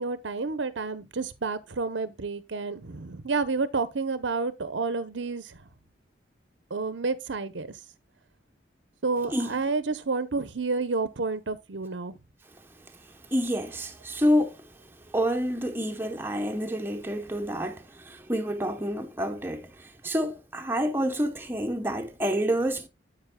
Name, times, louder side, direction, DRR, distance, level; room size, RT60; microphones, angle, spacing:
voice 1, 0.0-5.6 6.7-7.7 9.0-12.2, right 4 dB, 80° right, 0.8 m, -30 dB
voice 2, 13.3-14.5 15.1-19.7 20.0-22.9, equal, 10° right, 0.8 m, -28 dB
9.8 x 8.1 x 2.2 m
head